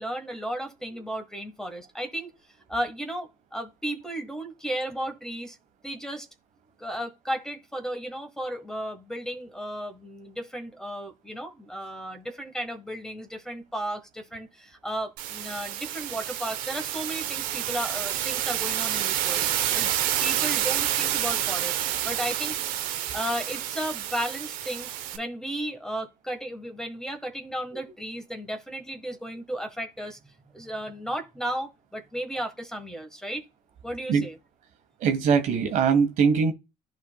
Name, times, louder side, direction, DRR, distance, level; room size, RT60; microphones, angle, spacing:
voice 1, 0.0-2.3 2.7-5.6 5.8-6.3 6.8-19.9 20.2-21.8 22.0-22.6 23.1-33.4 33.8-34.4, right 1 dB, 5° left, 1.4 m, -34 dB
sound 1, 15.2-25.2, right 11 dB, 90° right, 0.8 m, -29 dB
voice 2, 35.0-36.5, right 6 dB, 65° right, 1.3 m, -21 dB
11.0 x 4.4 x 2.3 m
cardioid pair, 100°, 14 cm